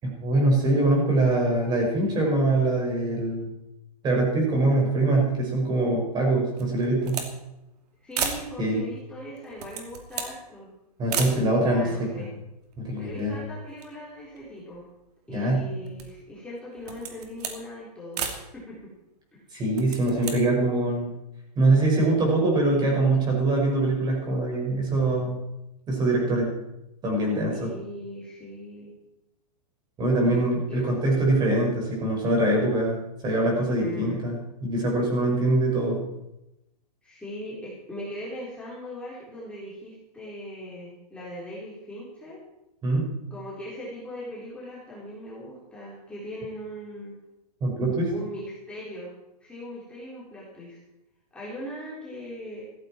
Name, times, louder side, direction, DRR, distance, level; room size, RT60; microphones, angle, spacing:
voice 1, 0.0-3.5 4.0-7.2 8.6-8.8 11.0-12.3 12.8-13.4 15.3-15.6 19.5-21.1 21.6-25.4 25.9-26.5 27.0-27.7 30.0-36.0 42.8-43.1 47.6-48.1, right 2 dB, 20° right, -1 dB, 5.6 m, -23 dB
sound 1, 6.6-7.3 7.6-7.7 8.1-8.5 9.4-10.4 11.1-11.4 12.2-12.3 12.5-13.4 13.7-15.0 15.5-16.2 16.8-17.6 18.1-18.4 19.6-20.4, right 6 dB, 70° right, 2.9 m, -33 dB
voice 2, 8.0-10.7 11.6-12.3 13.0-14.9 15.3-18.9 19.3-19.4 27.5-28.9 30.2-30.9 33.8-34.2 37.0-42.4 43.3-47.1 48.1-49.2 49.4-50.8 51.3-52.7, equal, 5° left, -8 dB, 3.8 m, -39 dB
15.5 x 15.0 x 4.5 m, 0.89 s
hypercardioid pair, 150°, 21 cm